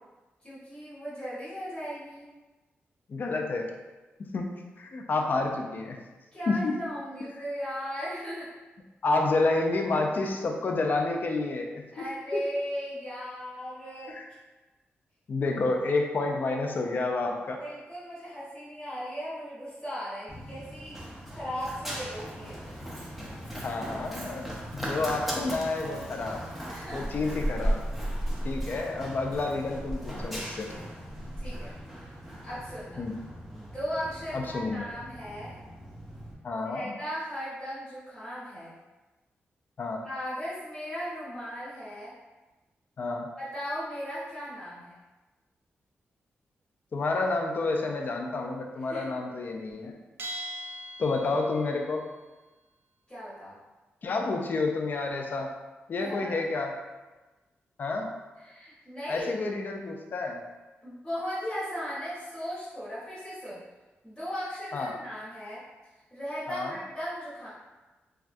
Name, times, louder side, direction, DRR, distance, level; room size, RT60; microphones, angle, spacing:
voice 1, 0.4-2.3 6.3-8.5 11.9-14.1 17.6-21.0 21.3-22.6 26.7-27.1 31.4-31.7 32.4-33.0 33.5-35.6 36.5-38.7 40.0-42.1 43.4-44.9 48.9-49.1 53.1-53.6 56.0-56.4 58.4-59.3 60.8-63.6 64.0-65.6 66.1-67.5, equal, 15° left, -12 dB, 1.1 m, -37 dB
voice 2, 3.1-3.7 4.3-4.5 4.8-6.0 6.5-6.8 9.0-12.0 12.3-12.4 14.1-14.3 15.3-17.6 23.5-26.4 26.9-27.8 28.4-30.7 33.0-33.2 34.3-34.9 36.4-36.9 39.8-40.0 43.0-43.3 46.9-49.9 51.0-52.0 54.0-55.5 55.9-56.8 57.8-58.1 59.1-60.4 64.7-65.0 66.5-66.8, left 3 dB, 45° left, 2 dB, 0.4 m, -29 dB
Run, 20.3-36.3, equal, ahead, 0.5 m, -36 dB
Bell, 50.2-51.8, right 1 dB, 60° right, 0.3 m, -39 dB
3.3 x 2.3 x 2.5 m, 1.2 s
wide cardioid pair, 110°, 4 cm